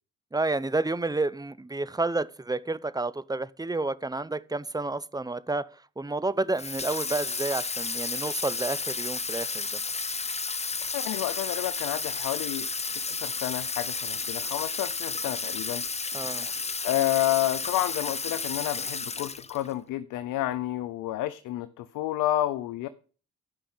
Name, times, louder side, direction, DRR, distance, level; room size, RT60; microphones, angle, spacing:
voice 1, 0.3-5.6 6.0-9.7 16.1-16.5, right 2 dB, 10° right, 0.8 m, -30 dB
Water tap faucet / Sink (filling or washing), 6.6-19.7, left 4 dB, 20° left, 0.8 m, -32 dB
voice 2, 10.9-15.8 16.4-16.5 16.8-22.9, left 14 dB, 80° left, 0.7 m, -30 dB
12.0 x 5.7 x 8.5 m
supercardioid pair, 60°, 31 cm